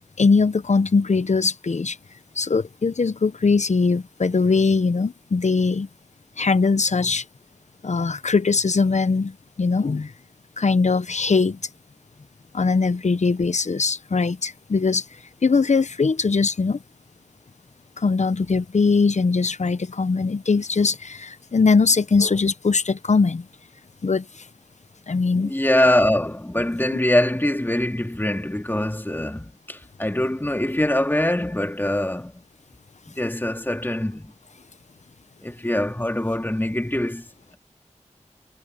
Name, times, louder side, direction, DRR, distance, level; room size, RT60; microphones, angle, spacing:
voice 1, 0.2-2.0 2.4-5.9 6.4-7.2 7.8-10.1 10.6-11.6 12.5-15.0 15.4-16.8 18.0-23.5 24.0-24.3 25.1-25.5, left 4 dB, 70° left, 0.8 m, -21 dB
voice 2, 25.3-32.4 33.2-34.3 35.4-37.6, left 1 dB, 15° left, 2.6 m, -23 dB
wide cardioid pair, 70°, 12 cm